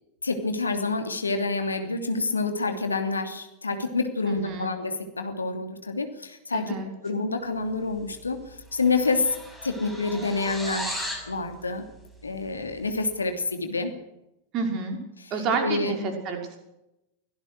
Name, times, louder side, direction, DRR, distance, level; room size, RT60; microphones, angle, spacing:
voice 1, 0.2-6.7 7.0-9.4 9.6-11.8 12.2-13.9 15.6-15.9, left 3 dB, 75° left, 6 dB, 2.9 m, -28 dB
voice 2, 4.2-4.7 6.5-6.9 14.5-15.0 15.3-16.6, right 4 dB, 35° right, 3 dB, 5.8 m, -29 dB
sound 1, 8.1-8.4 8.6-11.3, equal, 5° right, 6.6 m, -36 dB
24.5 x 18.0 x 6.5 m, 0.90 s
figure-of-eight pair, 90°, 0 cm